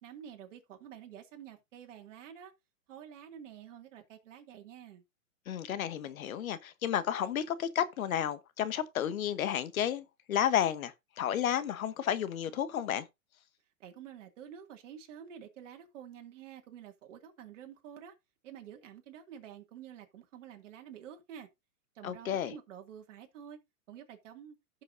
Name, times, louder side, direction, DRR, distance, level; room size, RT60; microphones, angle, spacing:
voice 1, 0.0-2.5 2.9-5.0 13.8-18.1 18.4-21.5 21.9-23.6 23.9-24.6, right 9 dB, 55° right, 2.4 m, -49 dB
voice 2, 5.5-13.1 22.0-22.5, left 10 dB, 70° left, 1.1 m, -32 dB
15.5 x 6.2 x 2.7 m
hypercardioid pair, 150°, 44 cm